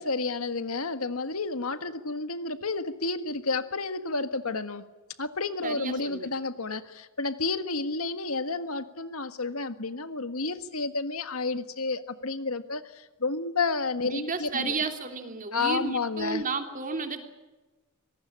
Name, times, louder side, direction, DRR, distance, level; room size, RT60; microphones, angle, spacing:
voice 1, 0.0-4.8 5.2-14.8 15.5-16.4, left 3 dB, 80° left, 10 dB, 1.7 m, -31 dB
voice 2, 5.6-6.3 14.0-17.3, right 4 dB, 40° right, 6 dB, 3.2 m, -32 dB
25.0 x 19.5 x 8.7 m, 1.1 s
head